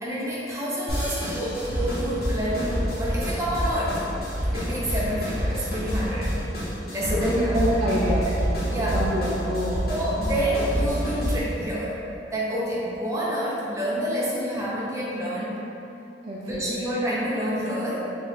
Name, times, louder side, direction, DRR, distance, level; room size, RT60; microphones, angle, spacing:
voice 1, 0.0-4.0 4.5-6.4 6.9-7.6 8.3-8.4 8.7-9.0 9.9-12.0 12.3-15.6 16.4-18.0, equal, 15° right, -7 dB, 0.8 m, -28 dB
sound 1, 0.9-11.6, equal, 60° left, 1.2 m, -29 dB
sound 2, 1.5-6.4, equal, 50° right, 0.8 m, -36 dB
sound 3, 7.0-11.1, right 1 dB, 85° left, 0.6 m, -31 dB
voice 2, 7.1-8.3 8.8-9.9 16.2-16.8, equal, 35° right, -7 dB, 0.4 m, -26 dB
4.6 x 2.5 x 3.6 m, 2.8 s
head